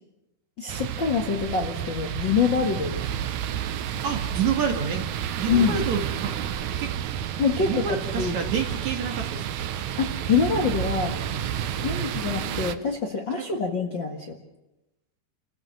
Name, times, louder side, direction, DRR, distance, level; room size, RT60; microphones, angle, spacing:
voice 1, 0.6-3.1 5.5-5.7 7.4-8.3 10.0-11.2 11.8-14.4, left 5 dB, 45° left, 1 dB, 1.7 m, -25 dB
sound 1, 0.7-12.8, right 10 dB, 75° right, 1.8 m, -30 dB
voice 2, 4.0-5.1 5.4-6.3 6.8-6.9 7.7-9.6 11.9-12.1, right 6 dB, 55° right, 4 dB, 2.8 m, -28 dB
29.0 x 15.0 x 7.7 m, 0.97 s
omnidirectional pair, 4.4 m